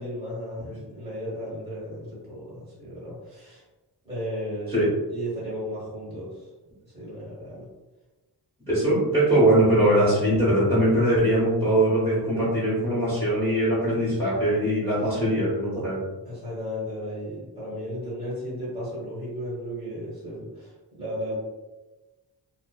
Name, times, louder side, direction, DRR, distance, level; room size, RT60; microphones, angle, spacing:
voice 1, 0.0-3.6 4.0-6.5 6.8-7.7 16.2-21.3, equal, 15° right, -8 dB, 1.1 m, -35 dB
voice 2, 8.7-16.0, right 1 dB, 5° left, -11 dB, 1.2 m, -21 dB
2.5 x 2.3 x 2.3 m, 1.2 s
wide cardioid pair, 95°, 42 cm